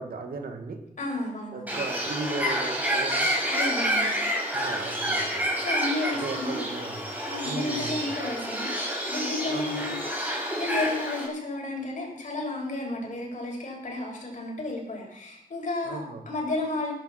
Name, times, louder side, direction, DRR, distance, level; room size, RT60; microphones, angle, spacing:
voice 1, 0.0-0.8 1.5-3.3 4.5-5.5 6.1-7.1 7.4-8.1 9.5-9.8 15.9-16.2, right 3 dB, 90° right, 4 dB, 2.3 m, -36 dB
voice 2, 1.0-1.8 3.5-4.1 5.6-6.7 7.2-16.9, left 2 dB, 60° left, -1 dB, 6.9 m, -32 dB
Bird, 1.7-11.3, equal, 10° right, 5.5 m, -29 dB
20.5 x 11.5 x 4.4 m, 0.73 s
wide cardioid pair, 140°, 15 cm